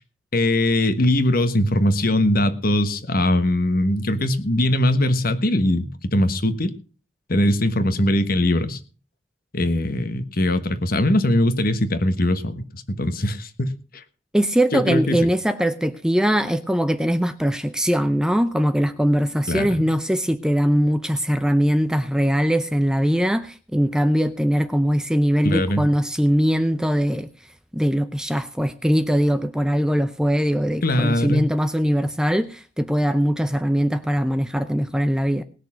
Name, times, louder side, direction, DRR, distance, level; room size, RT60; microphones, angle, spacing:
voice 1, 0.3-6.7 7.3-8.8 9.5-14.0 14.7-15.3 19.5-19.8 25.4-25.8 30.8-31.5, left 1 dB, 45° left, 11 dB, 1.3 m, -21 dB
voice 2, 14.3-27.3 27.7-35.4, equal, 5° right, 10 dB, 0.5 m, -21 dB
19.5 x 6.6 x 6.2 m, 0.38 s
head